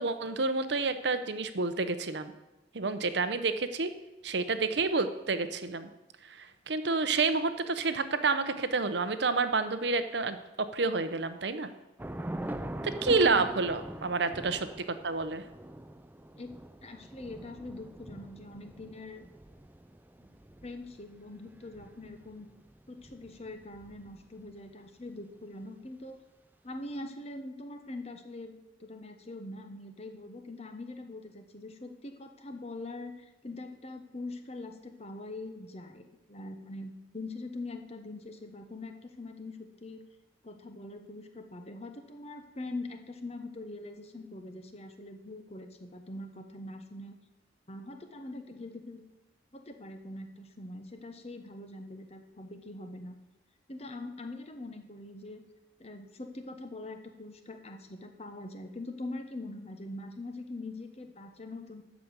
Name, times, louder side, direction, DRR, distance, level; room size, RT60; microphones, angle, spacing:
voice 1, 0.0-2.3 2.7-3.9 4.2-5.9 6.7-11.7 12.8-15.4, right 3 dB, 65° right, 10 dB, 0.8 m, -29 dB
Thunder / Rain, 12.0-24.5, right 1 dB, 10° right, 0.4 m, -44 dB
voice 2, 16.3-19.3 20.2-20.3 20.6-22.5 22.9-26.2 26.6-36.0 36.3-40.0 40.4-47.2 47.7-49.0 49.5-53.2 53.7-55.4 55.8-61.8, left 2 dB, 35° left, 6 dB, 1.1 m, -43 dB
13.0 x 5.2 x 8.0 m, 1.0 s
head